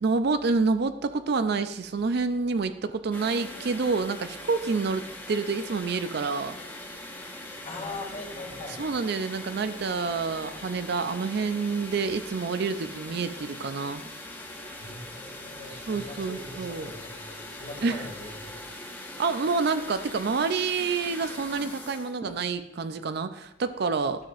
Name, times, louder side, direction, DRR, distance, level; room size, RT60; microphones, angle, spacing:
voice 1, 0.0-6.6 8.8-14.0 15.7-16.9 17.8-18.1 19.2-24.2, right 4 dB, 55° right, 10 dB, 0.4 m, -28 dB
sound 1, 3.1-22.5, left 1 dB, 10° left, 0.8 m, -41 dB
voice 2, 7.6-8.8 14.8-18.6, left 2 dB, 45° left, -2 dB, 2.1 m, -41 dB
11.5 x 7.3 x 2.4 m, 0.84 s
head